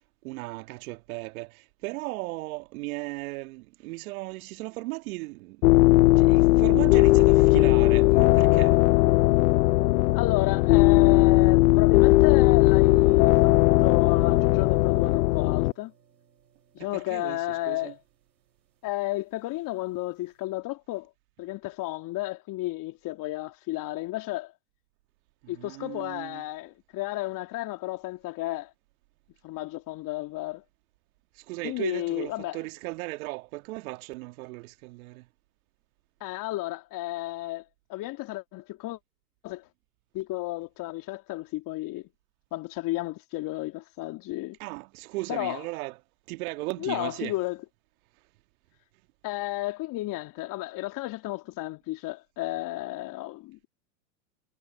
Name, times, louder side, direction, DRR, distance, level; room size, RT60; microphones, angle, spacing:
voice 1, 0.2-5.7 6.2-8.8 16.8-17.9 25.4-26.4 31.3-35.3 44.6-45.9 46.3-47.3, right 22 dB, 55° right, 1.8 m, -36 dB
sound 1, 5.6-15.7, left 19 dB, 65° left, 0.5 m, -19 dB
voice 2, 10.1-15.9 16.7-18.0 18.8-21.1 21.4-24.5 25.5-28.7 29.4-30.6 31.6-32.6 36.2-37.6 37.9-39.0 39.4-39.7 40.1-42.0 42.5-44.6 45.3-45.6 46.8-47.6 49.2-53.7, left 18 dB, 40° left, 2.5 m, -32 dB
sound 2, 12.7-18.7, right 8 dB, 85° right, 4.2 m, -51 dB
hypercardioid pair, 100°, 49 cm